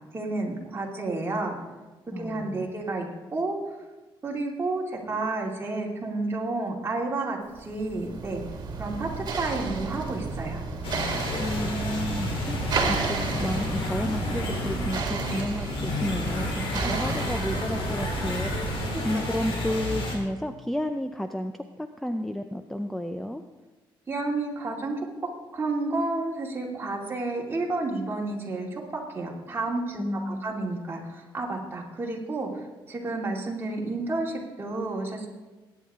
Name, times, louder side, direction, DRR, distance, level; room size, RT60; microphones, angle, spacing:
voice 1, 0.1-1.6 2.2-3.1 3.3-3.6 4.2-8.4 8.8-10.6 16.8-17.0 18.9-19.0 24.1-25.0 25.5-35.3, right 2 dB, 25° right, -2 dB, 2.5 m, -31 dB
voice 2, 2.1-2.7 11.4-23.4 30.0-30.5, left 1 dB, ahead, 7 dB, 0.5 m, -32 dB
sound 1, 7.6-19.1, right 4 dB, 50° right, 2.2 m, -32 dB
sound 2, 10.8-20.2, left 1 dB, 80° left, 3.4 m, -31 dB
21.0 x 9.5 x 3.7 m, 1.2 s
cardioid pair, 130°, 9 cm